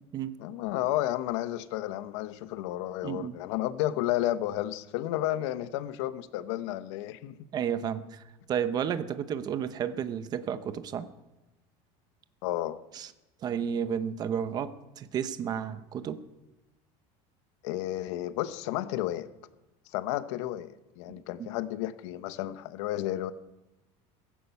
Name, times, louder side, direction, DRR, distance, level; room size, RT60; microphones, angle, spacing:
voice 1, 0.4-7.5 12.4-12.8 17.6-19.3 19.9-23.3, left 14 dB, 80° left, 13 dB, 1.0 m, -32 dB
voice 2, 3.0-3.3 7.5-8.2 8.5-11.1 12.9-13.1 13.4-16.2 21.4-21.5, right 8 dB, 25° right, 12 dB, 0.8 m, -32 dB
16.0 x 15.0 x 5.7 m, 1.0 s
cardioid pair, 180°, 15 cm